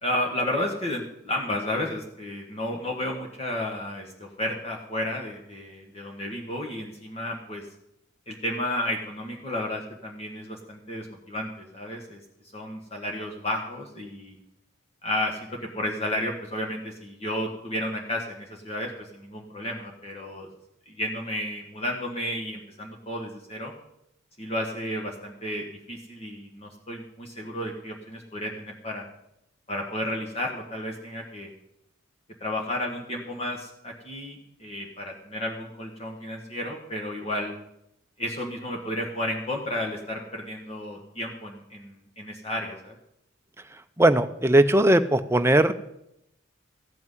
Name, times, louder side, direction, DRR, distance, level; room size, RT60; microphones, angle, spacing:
voice 1, 0.0-7.7 8.3-12.2 12.5-14.4 15.0-20.5 20.9-23.7 24.4-29.1 29.7-31.5 32.4-37.5 38.2-43.0, left 1 dB, 30° left, 0 dB, 1.5 m, -32 dB
voice 2, 44.0-45.7, right 1 dB, 15° right, 9 dB, 0.6 m, -19 dB
14.5 x 6.1 x 9.3 m, 0.81 s
head